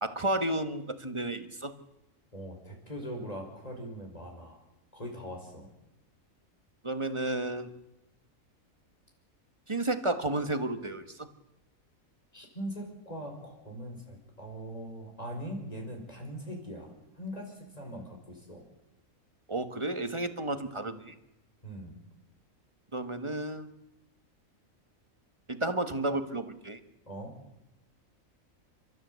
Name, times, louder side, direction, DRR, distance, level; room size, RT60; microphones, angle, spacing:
voice 1, 0.0-1.7 6.8-7.7 9.7-11.3 19.5-21.1 22.9-23.8 25.5-26.8, right 2 dB, 20° right, 9 dB, 1.4 m, -32 dB
voice 2, 2.3-4.6 4.9-5.7 12.3-18.7 21.6-22.0 27.1-27.4, equal, 30° left, 1 dB, 5.5 m, -41 dB
30.0 x 13.5 x 8.2 m, 0.91 s
omnidirectional pair, 1.4 m